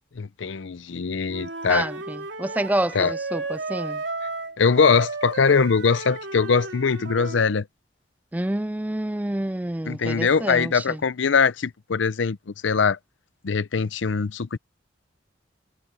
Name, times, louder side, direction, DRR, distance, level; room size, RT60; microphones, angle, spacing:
voice 1, 0.2-1.9 2.9-3.1 4.6-7.7 9.9-12.4 12.6-13.0 13.4-14.6, left 5 dB, 80° left, 0.6 m, -22 dB
Wind instrument woodwind instrument, 1.3-7.5, right 3 dB, 75° right, 3.1 m, -33 dB
voice 2, 1.7-4.0 8.3-11.0, right 1 dB, 10° right, 0.3 m, -28 dB
head